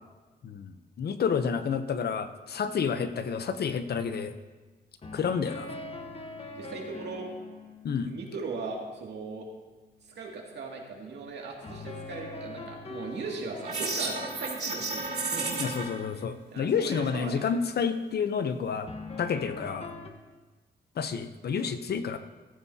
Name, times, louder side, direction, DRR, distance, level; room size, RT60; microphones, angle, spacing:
voice 1, 0.4-4.3 5.1-5.7 7.8-8.1 15.6-18.9 19.2-19.9 21.0-22.2, left 6 dB, 65° left, 10 dB, 0.8 m, -30 dB
sound 1, 2.5-2.9 5.0-9.1 11.6-17.2 18.9-20.1, left 2 dB, 35° left, 1.2 m, -43 dB
voice 2, 6.5-7.3 8.1-9.5 10.0-15.6 16.5-17.5, right 4 dB, 80° right, -1 dB, 2.4 m, -39 dB
sound 2, 13.6-15.8, right 3 dB, 45° right, 2.8 m, -32 dB
15.0 x 14.5 x 2.8 m, 1.3 s
wide cardioid pair, 120°, 18 cm